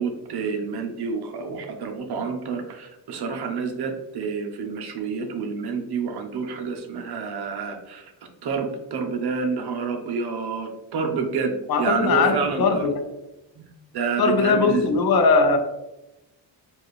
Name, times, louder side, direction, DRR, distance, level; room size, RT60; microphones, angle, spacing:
voice 1, 0.0-8.1 8.4-12.9 13.6-13.7 13.9-14.9, right 5 dB, 55° right, 4 dB, 0.9 m, -28 dB
voice 2, 11.7-12.9 14.2-15.6, left 4 dB, 50° left, 6 dB, 0.7 m, -20 dB
4.6 x 2.6 x 3.1 m, 0.96 s
cardioid pair, 115°, 47 cm